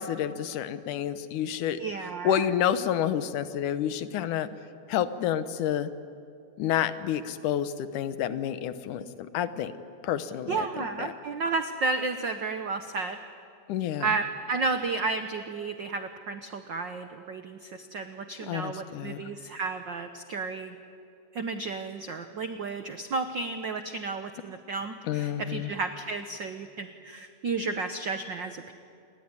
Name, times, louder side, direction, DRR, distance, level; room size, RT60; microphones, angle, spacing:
voice 1, 0.0-1.8 2.2-4.5 4.9-5.9 6.6-9.7 10.0-11.1 13.7-14.1 18.5-19.2 25.0-25.7, left 10 dB, 85° left, 12 dB, 2.5 m, -29 dB
voice 2, 1.8-2.5 10.5-13.2 14.0-20.7 21.3-28.7, right 4 dB, 75° right, 8 dB, 1.0 m, -32 dB
28.5 x 21.5 x 9.7 m, 2.5 s
omnidirectional pair, 3.5 m